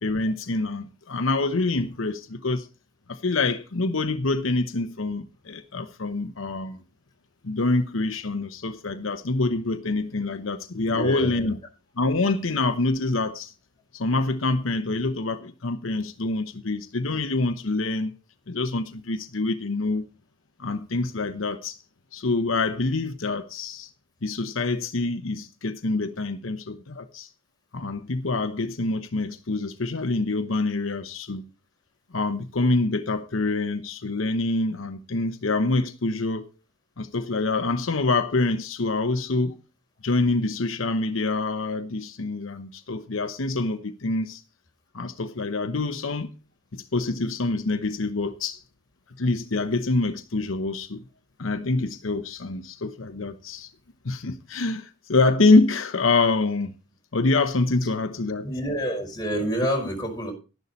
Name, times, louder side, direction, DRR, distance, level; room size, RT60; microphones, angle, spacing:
voice 1, 0.0-2.7 3.1-6.8 7.4-11.6 12.0-13.5 13.9-18.1 18.5-20.1 20.6-21.8 22.1-23.9 24.2-27.3 27.7-31.5 32.1-36.5 37.0-39.6 40.0-44.4 44.9-46.3 46.7-48.6 49.2-51.0 51.4-53.7 54.0-56.7 57.1-58.5, left 3 dB, 75° left, 0.9 m, -26 dB
voice 2, 10.9-11.5 58.4-60.3, equal, 20° left, 4.9 m, -28 dB
12.0 x 11.0 x 4.0 m
head